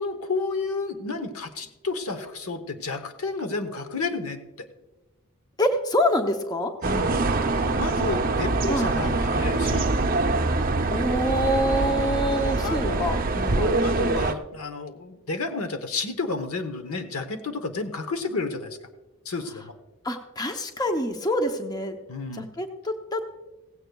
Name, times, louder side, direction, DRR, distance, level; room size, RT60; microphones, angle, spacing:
voice 1, 0.0-4.7 6.8-9.9 12.6-18.8 19.2-19.7 22.1-22.5, left 3 dB, 75° left, 8 dB, 1.0 m, -31 dB
voice 2, 5.6-6.7 8.7-8.9 10.9-13.2 13.5-13.8 20.0-21.9 22.3-23.3, equal, 15° left, 5 dB, 0.7 m, -26 dB
sound 1, 6.8-14.3, right 3 dB, 40° right, 0.6 m, -24 dB
16.5 x 16.0 x 2.3 m, 1.1 s
head